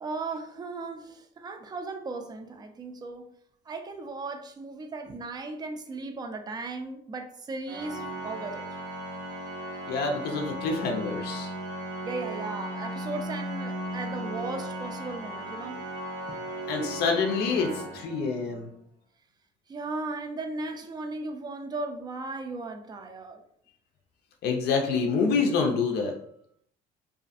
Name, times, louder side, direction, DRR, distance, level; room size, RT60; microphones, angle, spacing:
voice 1, 0.0-3.3 3.7-8.7 12.0-15.9 16.3-16.5 19.7-23.4, right 3 dB, 25° right, 5 dB, 0.4 m, -36 dB
Organ, 7.7-18.6, right 1 dB, 85° right, 0.7 m, -36 dB
voice 2, 9.9-11.5 16.7-18.7 24.4-26.1, left 4 dB, 75° left, 3 dB, 0.4 m, -27 dB
2.5 x 2.3 x 2.4 m, 0.66 s
cardioid pair, 110°, 17 cm